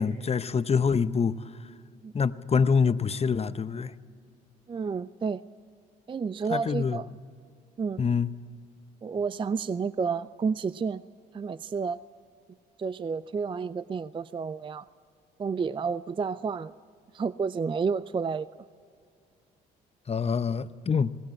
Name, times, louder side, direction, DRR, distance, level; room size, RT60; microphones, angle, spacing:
voice 1, 0.0-1.3 2.1-3.9 6.5-7.0 8.0-8.3 20.1-21.1, left 6 dB, 30° left, 0.7 m, -25 dB
voice 2, 4.7-5.4 6.1-7.1 7.8-8.0 9.0-11.0 11.3-12.0 12.8-14.9 15.4-16.7 17.1-18.5, right 5 dB, 25° right, 0.5 m, -30 dB
20.5 x 18.5 x 7.6 m
supercardioid pair, 65°, 20 cm